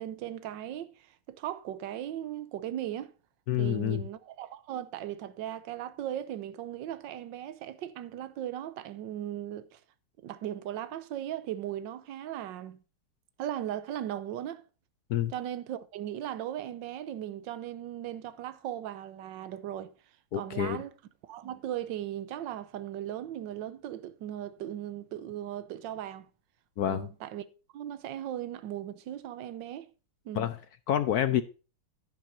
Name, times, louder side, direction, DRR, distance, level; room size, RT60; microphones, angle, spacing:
voice 1, 0.0-3.1 3.6-9.8 10.2-12.8 13.4-14.6 15.3-19.9 20.3-20.9 21.2-26.3 26.9-27.4 27.7-29.9 30.2-30.5, right 11 dB, 65° right, 1.4 m, -37 dB
voice 2, 3.5-4.0 15.1-15.3 20.3-20.8 26.8-27.1 30.3-30.6 30.9-31.4, left 11 dB, 70° left, 0.9 m, -28 dB
11.0 x 10.5 x 2.7 m
omnidirectional pair, 2.3 m